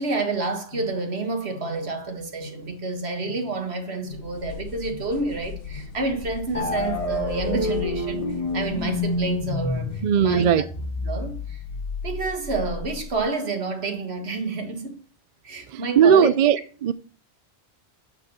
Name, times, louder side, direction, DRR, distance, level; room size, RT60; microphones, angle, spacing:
voice 1, 0.0-8.3 8.5-10.6 11.0-11.6 12.0-15.0 15.4-16.3, right 3 dB, 85° right, 1.9 m, -29 dB
sound 1, 0.7-1.2 1.5-2.1 2.4-2.9 3.2-3.7 4.0-4.5 4.8-5.3 5.6-6.0 6.5-6.9 7.8-8.4 9.0-9.3 9.8-10.1 10.7-11.0, left 1 dB, 80° left, 2.2 m, -43 dB
sound 2, 4.1-10.1, left 8 dB, 65° left, 1.1 m, -38 dB
sound 3, 6.5-13.2, left 2 dB, 35° left, 1.4 m, -29 dB
voice 2, 10.0-10.7 15.7-16.9, right 8 dB, 55° right, 0.5 m, -18 dB
8.6 x 5.3 x 5.5 m
omnidirectional pair, 1.1 m